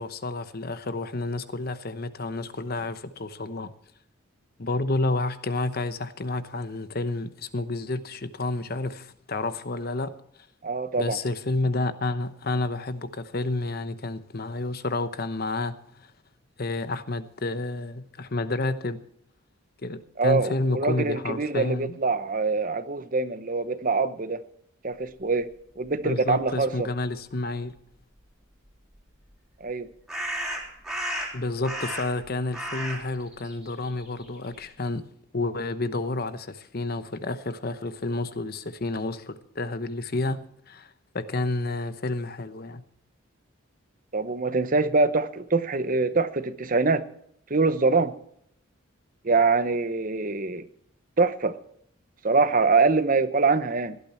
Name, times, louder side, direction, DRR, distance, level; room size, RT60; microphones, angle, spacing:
voice 1, 0.0-3.7 4.6-10.1 11.0-16.1 16.6-19.0 19.8-22.0 26.0-27.8 31.3-35.0 35.3-40.4 40.7-42.8, left 2 dB, 45° left, 0.9 m, -30 dB
voice 2, 10.6-11.2 20.2-24.4 24.8-25.5 25.8-26.9 29.6-29.9 44.1-47.0 47.5-48.1 49.2-50.6 51.2-51.5 52.2-54.0, right 3 dB, 40° right, 0.8 m, -24 dB
sound 1, 28.9-29.0 30.1-32.3 32.5-34.7, equal, ahead, 3.4 m, -33 dB
17.5 x 12.0 x 4.4 m
head